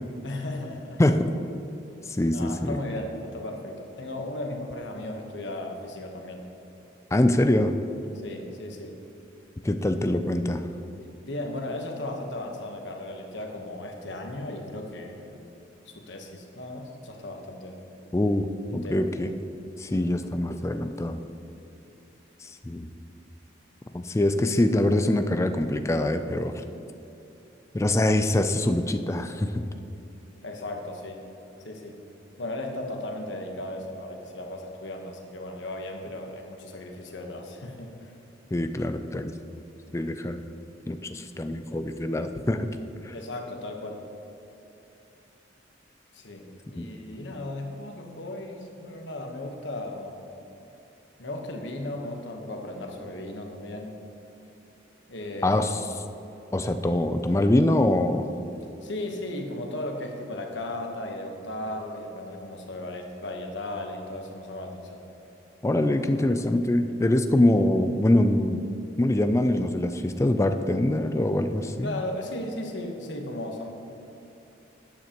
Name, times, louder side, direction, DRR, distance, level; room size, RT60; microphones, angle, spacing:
voice 1, 0.2-1.0 2.3-6.4 8.2-9.0 11.2-15.5 15.9-17.8 18.7-19.0 30.4-31.3 31.6-32.0 32.4-38.1 43.1-44.0 46.1-50.2 51.2-53.9 55.1-55.6 58.8-65.0 71.8-73.7, left 1 dB, 75° left, 3 dB, 1.1 m, -36 dB
voice 2, 2.1-2.8 7.1-7.7 9.6-10.6 18.1-18.5 18.7-19.3 19.8-21.2 22.4-22.9 23.9-26.6 27.7-29.6 38.5-39.6 39.9-40.4 40.9-42.7 43.0-43.1 46.8-46.9 55.4-55.8 56.5-58.3 65.6-68.7 69.0-72.0, left 1 dB, 15° left, 8 dB, 0.3 m, -24 dB
12.0 x 9.3 x 3.0 m, 2.9 s
head